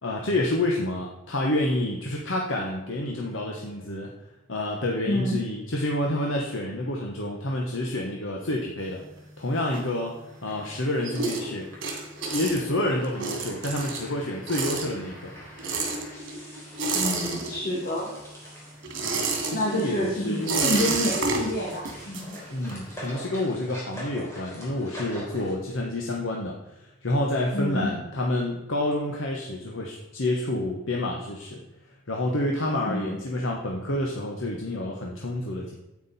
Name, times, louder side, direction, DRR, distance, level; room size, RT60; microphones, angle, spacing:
voice 1, 0.0-4.1 4.5-9.0 9.4-11.7 12.3-15.3 19.4-21.0 22.5-31.6 32.1-35.7, left 1 dB, 75° left, 0 dB, 1.2 m, -28 dB
voice 2, 5.1-5.4 16.9-18.1 19.5-20.4 20.6-22.4 27.5-27.9 32.9-33.2, left 1 dB, 50° left, -5 dB, 2.2 m, -28 dB
sound 1, 8.8-10.4 10.7-18.0 18.2-22.9, right 3 dB, 65° right, 2.4 m, -31 dB
sound 2, 10.2-25.5, equal, 15° left, 3.7 m, -45 dB
9.4 x 8.6 x 4.2 m, 1.0 s
head